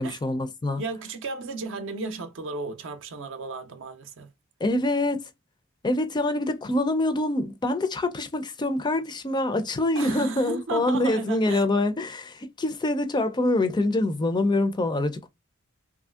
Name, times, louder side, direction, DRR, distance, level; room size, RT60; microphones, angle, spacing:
voice 1, 0.0-0.8 4.6-5.3 5.8-15.3, left 2 dB, 20° left, 0.4 m, -25 dB
voice 2, 0.8-4.3 9.9-11.6, right 3 dB, 60° right, 0.5 m, -34 dB
3.0 x 2.5 x 2.3 m
head